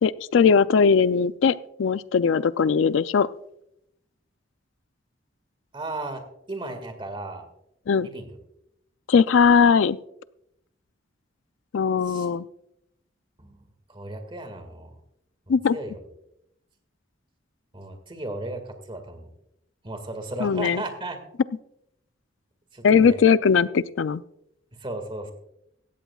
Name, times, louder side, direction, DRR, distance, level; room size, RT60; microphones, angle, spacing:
voice 1, 0.0-3.3 7.9-8.1 9.1-10.0 11.7-12.4 15.5-15.8 20.4-20.8 22.8-24.2, left 6 dB, 75° left, 16 dB, 0.4 m, -19 dB
voice 2, 5.7-6.2 6.5-7.4 8.0-8.4 12.1-12.3 13.4-13.6 13.9-15.0 15.5-16.0 17.7-19.3 19.8-21.2 22.7-23.2 24.8-25.3, right 2 dB, 25° right, 7 dB, 1.9 m, -35 dB
17.0 x 14.0 x 2.4 m, 0.78 s
head